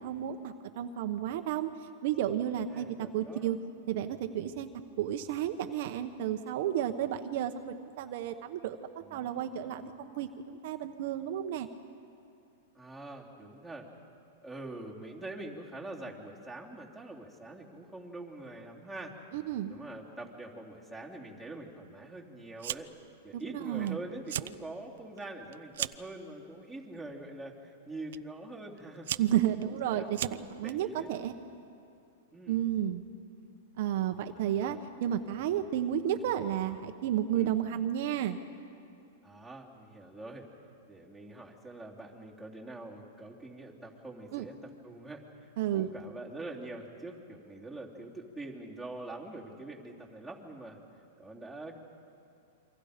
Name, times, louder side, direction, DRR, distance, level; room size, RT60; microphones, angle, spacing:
voice 1, 0.0-1.7 2.0-3.6 3.9-4.7 5.0-11.7 19.3-19.7 23.3-24.0 29.2-30.2 30.5-31.3 32.5-33.0 33.8-38.4 44.3-44.4 45.6-45.9, right 11 dB, 55° right, 6 dB, 1.0 m, -32 dB
voice 2, 2.7-3.5 9.0-9.9 12.7-13.9 14.4-19.1 19.7-22.9 23.2-29.1 29.4-30.1 30.6-31.1 32.3-32.6 34.6-34.8 37.3-37.5 39.2-40.5 40.9-44.5 44.8-50.8 51.2-51.8, right 2 dB, ahead, -1 dB, 3.1 m, -44 dB
Fire, 22.6-23.1 23.4-23.9 24.2-24.6 25.0-26.1 26.9-27.2 28.1-28.2 28.8-30.7, right 11 dB, 70° right, 0.5 m, -37 dB
28.0 x 24.5 x 5.2 m, 2.6 s
hypercardioid pair, 145°, 0 cm